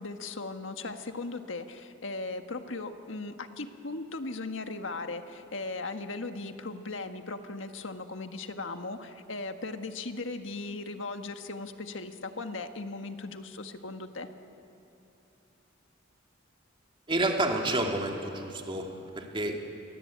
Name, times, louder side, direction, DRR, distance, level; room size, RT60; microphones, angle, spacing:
voice 1, 0.0-14.3, left 3 dB, 70° left, 7 dB, 1.6 m, -38 dB
voice 2, 17.1-19.6, right 2 dB, 25° right, 2 dB, 2.8 m, -29 dB
29.5 x 23.0 x 8.8 m, 2.8 s
head